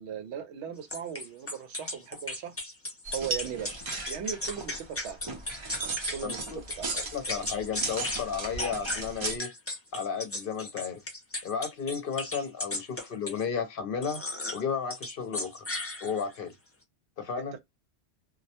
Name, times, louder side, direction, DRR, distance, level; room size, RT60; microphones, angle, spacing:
voice 1, 0.0-2.5 3.1-5.2 6.1-6.9, right 8 dB, 80° right, 0.9 m, -38 dB
sound 1, 0.9-6.4 6.7-8.2 8.6-13.4 14.0-14.6 14.9-16.4, left 2 dB, 20° left, 0.4 m, -36 dB
sound 2, 3.0-9.4, right 3 dB, 35° right, 0.5 m, -36 dB
voice 2, 6.2-6.6 6.9-9.5 9.9-11.0 11.4-14.2 14.5-15.6 16.0-16.5 17.2-17.6, left 6 dB, 60° left, 0.7 m, -33 dB
2.2 x 2.1 x 2.7 m
omnidirectional pair, 1.1 m